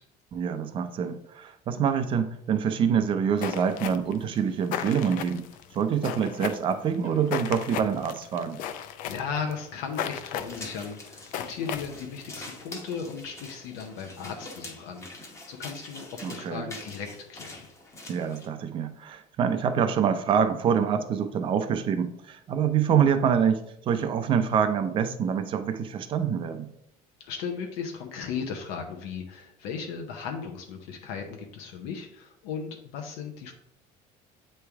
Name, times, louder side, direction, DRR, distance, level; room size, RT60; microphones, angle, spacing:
voice 1, 0.3-5.5 5.7-8.6 16.2-16.7 18.1-26.7, right 7 dB, 30° right, 8 dB, 0.5 m, -26 dB
sound 1, 3.4-12.4, left 9 dB, 55° left, 0.4 m, -36 dB
voice 2, 9.0-17.6 27.3-33.5, left 6 dB, 75° left, 3 dB, 0.8 m, -36 dB
sound 2, 10.3-18.5, left 2 dB, 15° left, 1.0 m, -44 dB
8.4 x 3.3 x 3.4 m, 0.77 s
cardioid pair, 160°, 16 cm